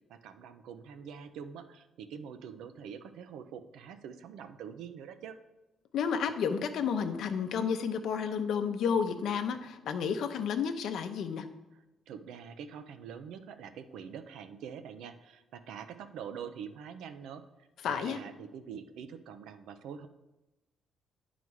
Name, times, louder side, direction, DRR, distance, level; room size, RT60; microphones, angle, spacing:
voice 1, 0.1-5.4 12.1-17.4 17.8-20.1, right 7 dB, 85° right, 10 dB, 0.5 m, -45 dB
voice 2, 5.9-11.5 17.8-18.2, left 6 dB, 75° left, 8 dB, 0.6 m, -31 dB
9.4 x 4.0 x 4.7 m, 1.0 s
cardioid pair, 90°, 0 cm